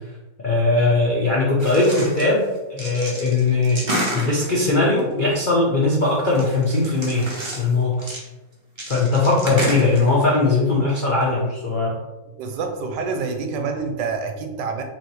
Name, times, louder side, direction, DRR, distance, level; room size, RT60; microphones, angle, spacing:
voice 1, 0.4-8.2 8.9-12.0, left 3 dB, 65° left, -5 dB, 0.4 m, -20 dB
sound 1, 1.6-2.3 2.5-5.0 6.0-7.7 8.0-8.2 8.8-10.6 10.9-11.0 11.2-11.3, right 1 dB, 40° right, 0.4 m, -30 dB
voice 2, 12.4-14.8, right 4 dB, 75° right, 5 dB, 1.2 m, -27 dB
6.0 x 2.6 x 3.1 m, 1.1 s
omnidirectional pair, 2.0 m